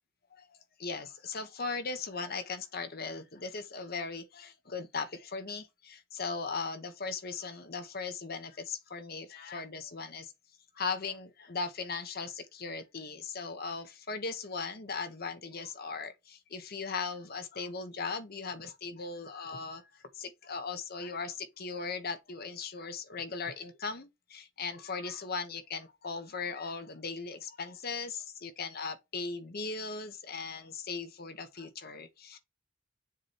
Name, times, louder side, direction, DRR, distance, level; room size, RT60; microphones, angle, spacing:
voice 1, 0.3-10.3 10.7-32.4, left 4 dB, 50° left, 1.1 m, -38 dB
7.2 x 3.3 x 4.3 m
head